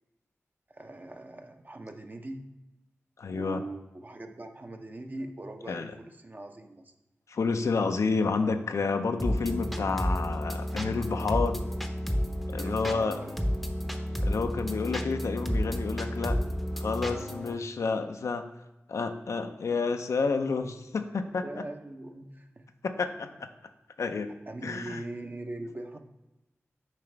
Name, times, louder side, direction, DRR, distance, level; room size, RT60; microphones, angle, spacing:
voice 1, 0.7-2.4 3.3-6.9 12.6-13.3 21.2-22.6 24.5-26.0, right 2 dB, 35° right, 5 dB, 0.7 m, -41 dB
voice 2, 3.2-3.6 5.7-5.9 7.3-11.6 12.5-13.2 14.2-16.4 16.8-18.5 18.9-21.4 22.8-23.3 24.0-24.3 24.6-25.0, left 4 dB, 85° left, 7 dB, 0.5 m, -30 dB
sound 1, 9.2-17.5, equal, ahead, 0.7 m, -31 dB
7.5 x 4.8 x 3.3 m, 1.0 s
wide cardioid pair, 60°, 5 cm